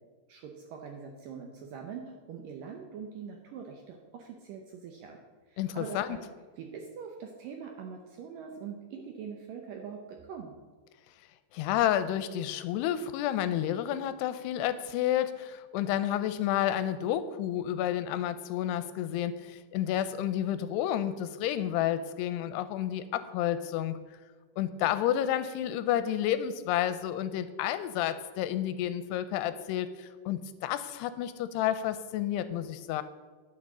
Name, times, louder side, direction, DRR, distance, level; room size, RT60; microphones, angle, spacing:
voice 1, 0.3-5.2 5.5-6.2 6.6-10.5, right 6 dB, 75° right, 2 dB, 2.1 m, -43 dB
voice 2, 5.6-6.1 11.5-24.0 24.6-33.0, left 11 dB, 85° left, 12 dB, 2.6 m, -30 dB
11.0 x 7.0 x 6.1 m, 1.4 s
omnidirectional pair, 4.9 m